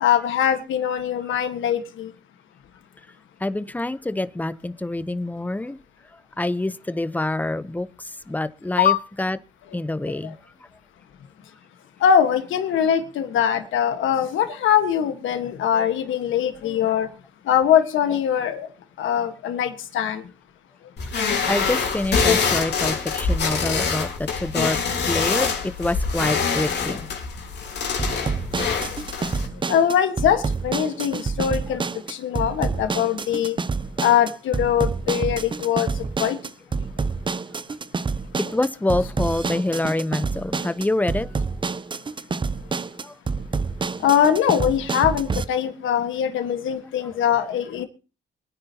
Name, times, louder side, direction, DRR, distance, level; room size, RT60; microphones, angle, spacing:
voice 1, 0.0-2.1 8.8-9.0 10.2-10.3 12.0-17.1 17.5-18.7 19.0-20.2 23.7-23.8 29.7-31.8 32.1-33.6 34.0-35.9 36.2-36.4 44.0-47.8, left 9 dB, 80° left, 1.5 m, -22 dB
voice 2, 3.4-5.8 6.4-7.9 8.3-9.4 9.7-10.3 21.5-24.8 25.1-27.1 38.5-41.5 43.0-43.1 44.0-44.1, left 2 dB, 10° left, 0.8 m, -26 dB
sound 1, 21.0-29.5, left 5 dB, 60° left, 3.3 m, -25 dB
sound 2, 28.0-45.4, right 4 dB, 25° right, 0.6 m, -28 dB
24.5 x 9.7 x 2.9 m
cardioid pair, 90°, 20 cm